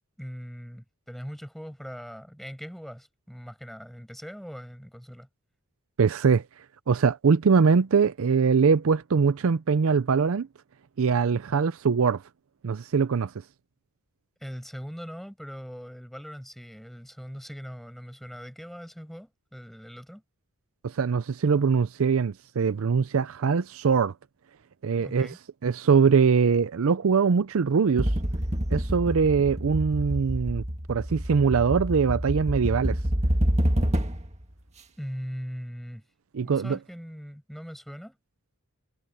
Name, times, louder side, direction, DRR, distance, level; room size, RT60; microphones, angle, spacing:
voice 1, 0.2-5.3 14.4-20.2 24.9-25.4 35.0-36.0 36.4-38.2, equal, ahead, 5.4 m, -40 dB
voice 2, 6.0-6.4 6.9-10.5 11.0-12.2 12.6-13.3 20.8-24.1 24.8-25.3 25.6-28.1 28.7-30.6 30.9-33.0 36.3-36.8, right 5 dB, 65° right, 0.5 m, -22 dB
sound 1, 28.0-34.4, equal, 30° right, 1.8 m, -27 dB
head